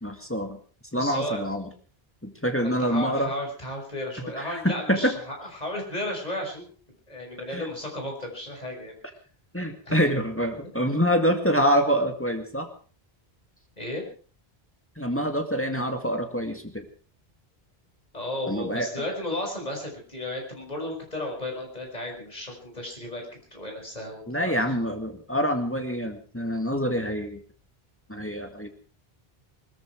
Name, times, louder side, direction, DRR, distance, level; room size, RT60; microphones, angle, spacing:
voice 1, 0.0-0.6 0.9-1.7 2.2-3.3 4.4-5.1 7.5-7.7 9.5-12.7 15.0-16.9 18.5-18.9 24.3-27.4 28.1-28.7, equal, 10° left, 5 dB, 2.0 m, -26 dB
voice 2, 0.9-1.4 2.6-6.7 7.1-9.0 13.8-14.1 18.1-24.6, left 1 dB, 40° left, 1 dB, 5.7 m, -34 dB
21.0 x 14.0 x 4.7 m, 0.41 s
omnidirectional pair, 1.0 m